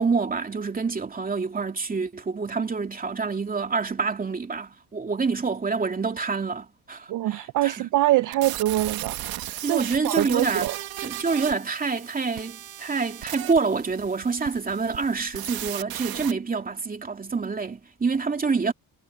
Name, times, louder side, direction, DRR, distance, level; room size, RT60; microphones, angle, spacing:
voice 1, 0.0-7.9 9.6-10.7 11.0-18.7, right 4 dB, 25° right, 2.8 m, -27 dB
voice 2, 7.1-9.2 9.7-10.8, right 16 dB, 60° right, 0.5 m, -24 dB
sound 1, 8.3-16.3, right 14 dB, 85° right, 1.5 m, -36 dB
cardioid pair, 110°, 35 cm